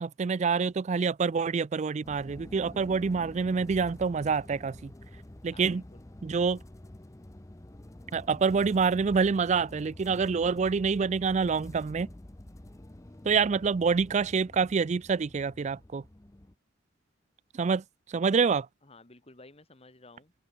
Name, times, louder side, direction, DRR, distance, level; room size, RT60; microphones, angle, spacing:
voice 1, 0.0-4.9 5.4-5.8 6.2-6.6 8.1-12.1 13.3-16.0 17.6-17.8 18.1-18.7, right 5 dB, 35° right, 0.4 m, -26 dB
sound 1, 2.0-16.5, left 1 dB, 15° left, 0.7 m, -48 dB
voice 2, 5.5-6.0 13.6-13.7 18.8-20.3, left 2 dB, 30° left, 2.0 m, -54 dB
open air
head